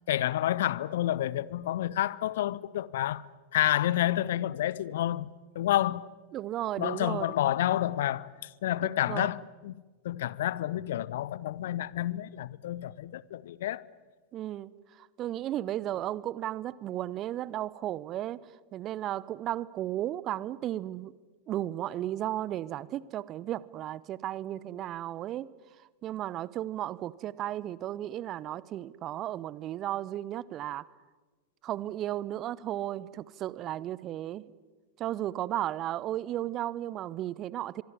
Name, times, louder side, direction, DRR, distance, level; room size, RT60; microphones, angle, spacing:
voice 1, 0.1-3.2 3.5-5.3 5.5-6.0 6.8-8.3 8.6-9.7 10.0-13.8, left 13 dB, 55° left, 0.8 m, -29 dB
voice 2, 6.3-7.3 9.1-9.3 14.3-18.4 18.7-21.1 21.5-25.5 26.0-30.9 31.6-34.4 35.0-37.8, right 13 dB, 35° right, 0.9 m, -34 dB
25.0 x 23.0 x 9.9 m
figure-of-eight pair, 90°, 0 cm